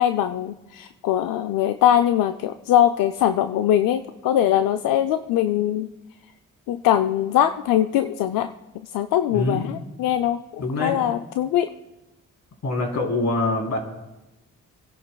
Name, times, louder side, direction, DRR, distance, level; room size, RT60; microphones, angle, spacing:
voice 1, 0.0-5.9 6.7-8.5 8.9-11.7, left 11 dB, 85° left, 8 dB, 0.5 m, -22 dB
voice 2, 9.3-9.7 10.6-11.0 12.6-13.8, left 2 dB, 60° left, 0 dB, 3.5 m, -24 dB
28.5 x 11.0 x 2.3 m, 0.98 s
cardioid pair, 65°, 32 cm